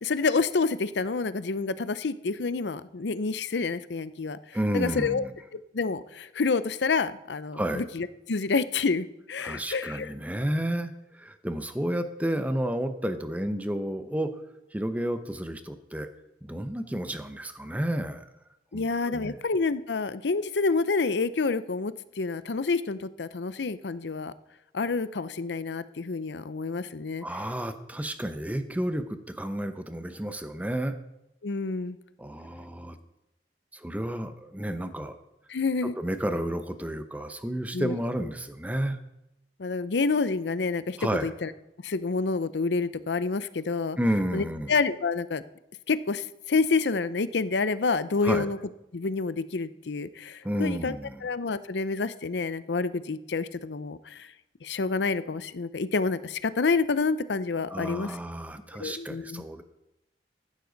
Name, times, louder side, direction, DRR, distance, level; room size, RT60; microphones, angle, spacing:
voice 1, 0.0-4.4 4.7-5.2 5.7-10.1 18.7-24.3 24.7-27.2 31.4-32.0 35.5-35.9 37.7-37.9 39.6-41.0 41.2-41.5 41.8-44.0 44.3-45.4 45.9-48.6 48.9-50.9 51.2-54.3 54.6-58.2 58.8-59.4, left 4 dB, 80° left, 14 dB, 0.6 m, -28 dB
voice 2, 4.5-5.3 7.5-7.8 9.4-14.3 14.7-16.1 16.4-18.3 18.7-19.4 27.2-30.9 32.2-33.0 33.7-35.2 35.8-39.0 41.0-41.3 44.0-44.7 48.2-48.5 50.4-51.2 57.7-59.6, right 1 dB, 10° right, 9 dB, 0.7 m, -31 dB
14.5 x 11.5 x 4.0 m, 0.89 s
head